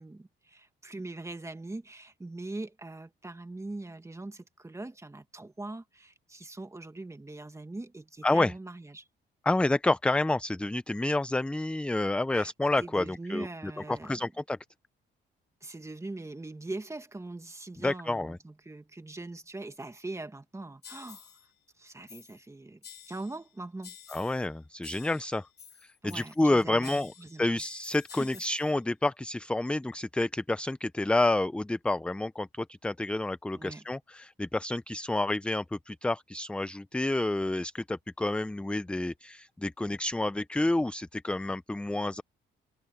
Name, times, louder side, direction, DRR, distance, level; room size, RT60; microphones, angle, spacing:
voice 1, 0.0-9.0 12.3-12.5 12.8-14.2 15.6-21.3 21.8-22.8 23.1-24.0 26.0-27.5 28.2-28.3 33.5-33.9, right 2 dB, 15° right, 1.8 m, -42 dB
voice 2, 8.2-8.5 9.4-13.5 13.9-14.6 17.8-18.4 24.1-25.5 25.8-27.1 27.4-42.2, left 2 dB, 5° left, 0.4 m, -29 dB
sound 1, 20.8-21.5 22.1-22.5 22.8-23.5 23.8-24.5 24.8-26.5 26.8-28.7, left 8 dB, 55° left, 4.0 m, -50 dB
cardioid pair, 90°, 20 cm